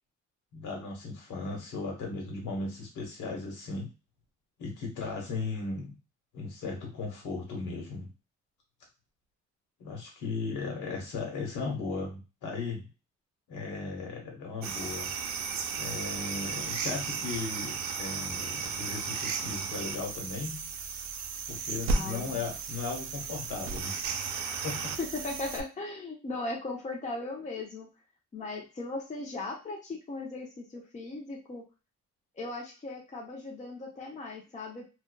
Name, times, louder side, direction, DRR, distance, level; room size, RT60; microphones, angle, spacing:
voice 1, 0.5-3.9 4.6-6.0 6.3-8.1 9.8-12.9 13.5-15.1 15.8-20.7 21.5-23.9 24.6-25.0, left 4 dB, 85° left, 0 dB, 1.1 m, -36 dB
sound 1, 14.6-25.6, right 5 dB, 70° right, 0.5 m, -34 dB
voice 2, 21.9-22.4 25.0-27.9 28.3-31.6 32.4-34.8, left 2 dB, 25° left, -1 dB, 0.7 m, -38 dB
2.5 x 2.3 x 2.2 m, 0.31 s
cardioid pair, 90°, 30 cm